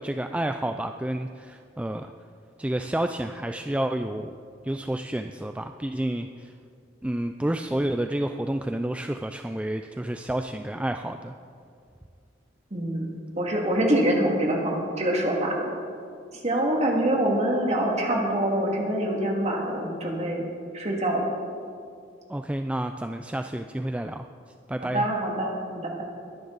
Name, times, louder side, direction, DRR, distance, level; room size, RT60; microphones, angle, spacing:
voice 1, 0.0-2.1 2.6-4.3 4.6-6.5 7.0-11.4 22.3-24.3 24.7-25.1, right 1 dB, 5° right, 6 dB, 0.3 m, -30 dB
voice 2, 12.7-15.7 16.4-20.5 20.7-21.3 24.9-26.0, right 1 dB, 35° right, -1 dB, 2.3 m, -25 dB
22.0 x 10.5 x 4.0 m, 2.4 s
head